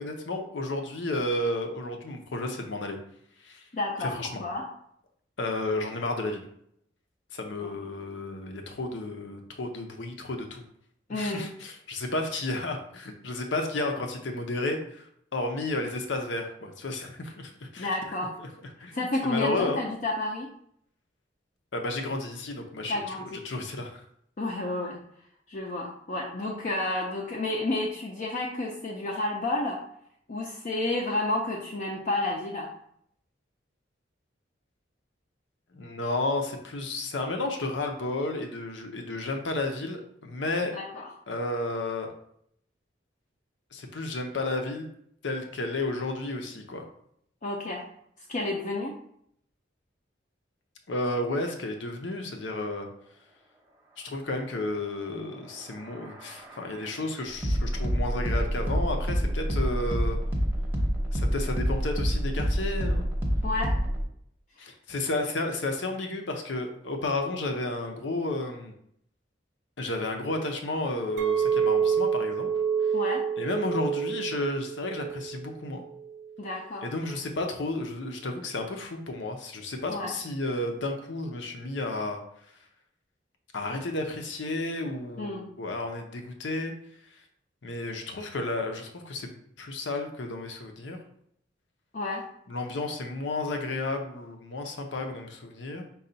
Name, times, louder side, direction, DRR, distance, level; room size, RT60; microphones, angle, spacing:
voice 1, 0.0-3.0 3.4-3.7 4.0-4.4 5.4-6.4 7.3-10.6 11.1-18.5 18.8-19.8 21.7-23.2 23.4-24.0 35.7-40.7 41.3-42.1 43.7-44.9 45.2-46.8 50.9-52.9 54.0-60.2 61.1-63.0 64.6-68.7 69.8-72.5 72.8-72.9 73.4-75.8 76.8-82.2 82.5-82.6 83.5-86.7 87.0-87.2 87.6-91.0 92.5-95.8, left 2 dB, 75° left, 4 dB, 0.7 m, -32 dB
voice 2, 3.7-4.1 4.4-4.6 7.6-7.7 11.1-11.5 17.8-18.4 18.9-20.5 22.9-23.4 24.4-25.0 25.5-29.8 30.3-32.7 40.7-41.1 47.4-47.8 48.3-48.9 63.4-63.8 72.9-73.2 76.4-76.9 79.9-80.1 85.2-85.5 91.9-92.2, left 2 dB, 40° left, -2 dB, 0.5 m, -30 dB
sound 1, 55.4-64.0, equal, 10° right, 0.8 m, -28 dB
Chink clink, 71.2-75.5 75.9-76.3, right 7 dB, 65° right, 0.5 m, -28 dB
5.4 x 2.3 x 3.9 m, 0.69 s
head